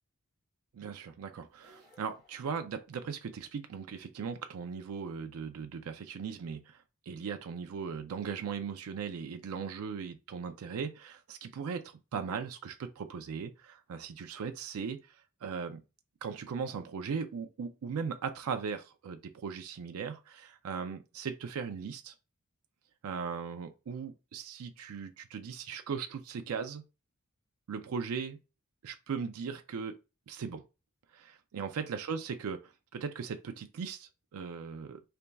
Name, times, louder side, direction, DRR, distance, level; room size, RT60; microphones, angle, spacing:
voice 1, 0.7-15.8 16.2-22.1 23.0-26.9 27.7-28.4 28.8-30.0 30.3-30.6 31.1-35.0, right 6 dB, 80° right, 0.4 m, -38 dB
sound 1, 1.5-3.5, left 1 dB, 35° left, 1.3 m, -64 dB
3.3 x 2.3 x 3.9 m
head